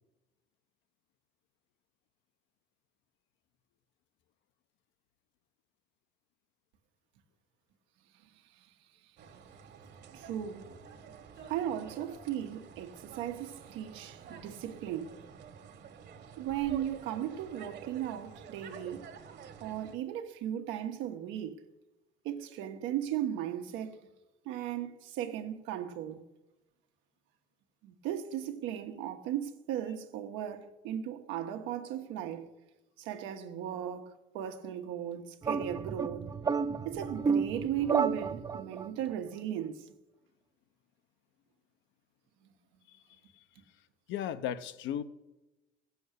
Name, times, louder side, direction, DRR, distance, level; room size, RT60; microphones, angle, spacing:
sound 1, 9.2-20.0, right 7 dB, 60° right, 1.6 m, -50 dB
voice 1, 10.1-10.7 11.5-15.2 16.4-19.1 19.6-21.6 22.2-24.0 24.4-26.2 27.8-32.5 33.0-36.3 36.8-39.9, right 10 dB, 90° right, 1.3 m, -36 dB
sound 2, 35.4-38.9, right 5 dB, 20° right, 0.5 m, -31 dB
voice 2, 42.9-43.4 44.1-45.0, left 10 dB, 75° left, 0.9 m, -37 dB
16.0 x 7.1 x 8.2 m
cardioid pair, 130°, 19 cm